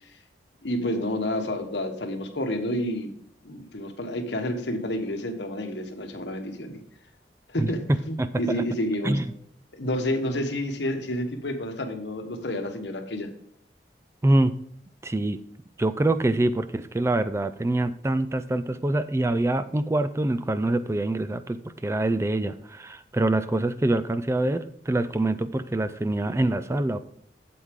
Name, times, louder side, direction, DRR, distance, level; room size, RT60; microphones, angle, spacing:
voice 1, 0.6-3.1 3.4-6.8 7.5-9.2 9.7-13.3, left 1 dB, 85° left, 5 dB, 1.3 m, -29 dB
voice 2, 7.6-8.6 9.0-9.3 14.2-14.5 15.0-15.4 15.8-27.0, right 2 dB, 15° right, 11 dB, 0.3 m, -25 dB
8.1 x 7.8 x 3.6 m, 0.68 s
head